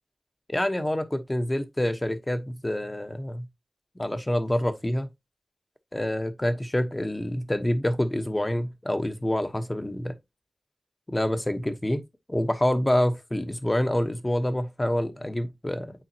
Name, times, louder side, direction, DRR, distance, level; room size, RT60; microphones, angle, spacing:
voice 1, 0.5-3.5 4.0-5.1 5.9-10.1 11.1-12.0 12.3-15.9, left 1 dB, 20° left, 1.0 m, -27 dB
9.0 x 3.8 x 2.8 m
cardioid pair, 50°, 0 cm